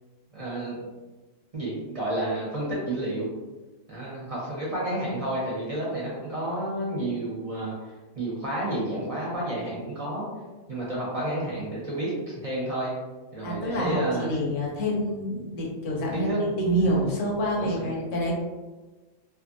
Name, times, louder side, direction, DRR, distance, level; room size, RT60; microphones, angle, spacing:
voice 1, 0.3-0.8 1.5-3.3 3.9-7.7 8.1-10.3 10.7-12.9 13.3-14.4 16.1-16.4 16.7-16.9 17.6-18.0, right 1 dB, 35° right, -7 dB, 0.8 m, -30 dB
voice 2, 13.4-16.3 16.6-18.3, equal, 80° left, -2 dB, 1.1 m, -27 dB
2.6 x 2.5 x 2.5 m, 1.2 s
omnidirectional pair, 1.3 m